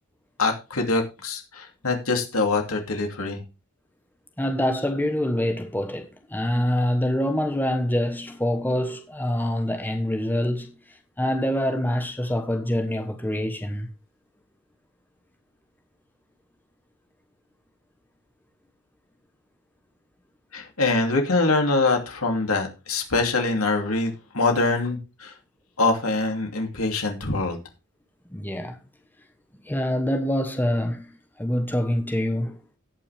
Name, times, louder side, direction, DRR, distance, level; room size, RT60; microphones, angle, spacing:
voice 1, 0.4-3.4 20.5-25.3 25.8-27.6, left 3 dB, 80° left, 2.7 m, -24 dB
voice 2, 4.4-10.8 11.2-13.9 28.3-28.8 29.6-32.6, left 1 dB, 10° left, 1.2 m, -25 dB
17.5 x 6.1 x 3.5 m
head